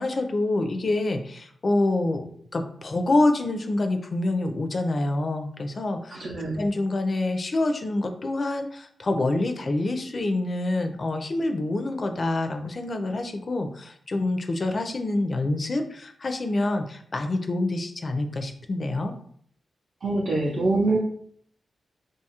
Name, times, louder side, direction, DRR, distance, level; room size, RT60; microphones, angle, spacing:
voice 1, 0.0-2.2 2.5-6.3 6.6-19.1, left 2 dB, 45° left, 6 dB, 0.4 m, -26 dB
voice 2, 6.1-6.6 20.0-21.0, right 2 dB, 55° right, -4 dB, 0.5 m, -24 dB
2.6 x 2.3 x 2.8 m, 0.62 s
cardioid pair, 70°, 0 cm